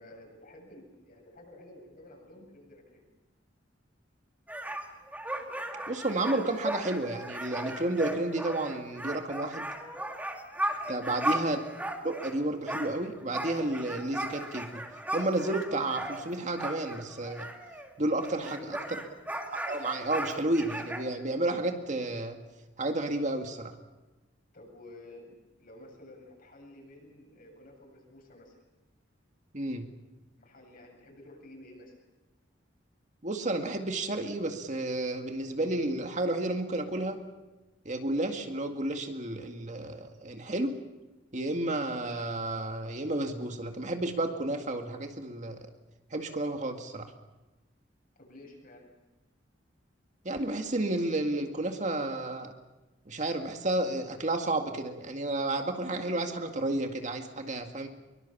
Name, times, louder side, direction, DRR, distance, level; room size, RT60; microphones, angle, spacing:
voice 1, 0.0-3.1 10.7-11.1 18.4-18.8 24.5-28.6 30.3-32.0 41.4-41.6 48.2-48.9, left 1 dB, 50° left, 1 dB, 8.0 m, -51 dB
sound 1, 4.5-12.4 12.7-17.9 18.2-21.0, right 1 dB, 10° right, 2.4 m, -36 dB
voice 2, 5.9-9.7 10.9-11.6 12.0-14.8 15.1-17.5 18.0-18.6 19.7-22.4 22.8-23.8 29.5-29.9 33.2-37.2 37.9-40.7 41.3-45.6 46.1-47.1 50.2-52.5 53.1-57.9, right 2 dB, 40° right, 5 dB, 2.0 m, -31 dB
24.0 x 23.0 x 7.2 m, 1.1 s
head